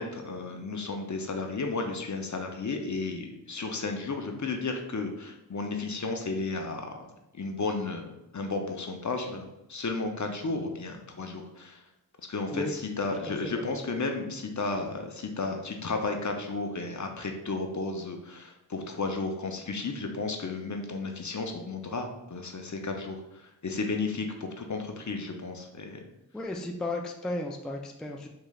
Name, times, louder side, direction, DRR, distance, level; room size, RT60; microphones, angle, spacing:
voice 1, 0.0-7.1 7.3-11.8 12.3-26.0, left 3 dB, 50° left, 4 dB, 0.5 m, -33 dB
voice 2, 26.3-28.3, left 2 dB, ahead, 3 dB, 0.3 m, -34 dB
3.6 x 3.2 x 2.3 m, 0.91 s
wide cardioid pair, 45°, 39 cm